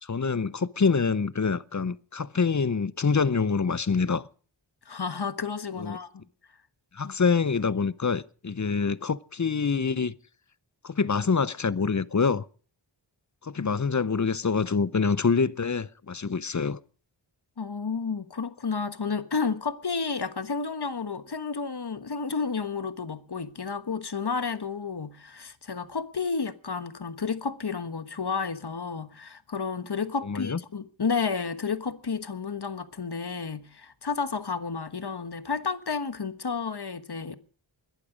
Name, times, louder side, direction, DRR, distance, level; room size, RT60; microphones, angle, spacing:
voice 1, 0.0-4.3 5.8-6.0 6.9-10.1 10.8-12.4 13.4-16.8 30.2-30.6, left 5 dB, 35° left, 0.7 m, -26 dB
voice 2, 4.9-6.2 7.0-7.2 13.6-13.8 17.6-37.3, left 5 dB, 55° left, 1.4 m, -31 dB
21.0 x 11.5 x 5.1 m
wide cardioid pair, 45°, 49 cm